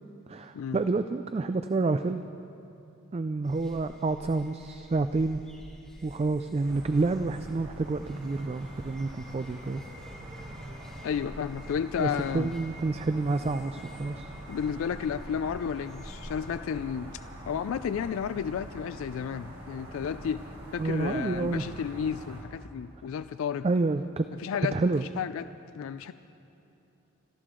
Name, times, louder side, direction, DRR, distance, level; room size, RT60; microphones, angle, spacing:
voice 1, 0.3-2.2 3.1-5.4 6.0-9.8 12.0-14.3 20.8-21.6 23.6-24.3 24.7-25.0, right 3 dB, 30° right, 10 dB, 0.3 m, -29 dB
sound 1, 3.4-16.6, equal, 5° left, 3.4 m, -49 dB
sound 2, 6.6-22.4, equal, 60° right, 4.0 m, -44 dB
voice 2, 11.0-12.5 14.5-17.2 17.5-20.5 20.7-23.7 24.3-24.8 25.2-25.5 25.7-26.1, left 7 dB, 70° left, 12 dB, 0.3 m, -32 dB
25.5 x 14.0 x 3.8 m, 3.0 s
head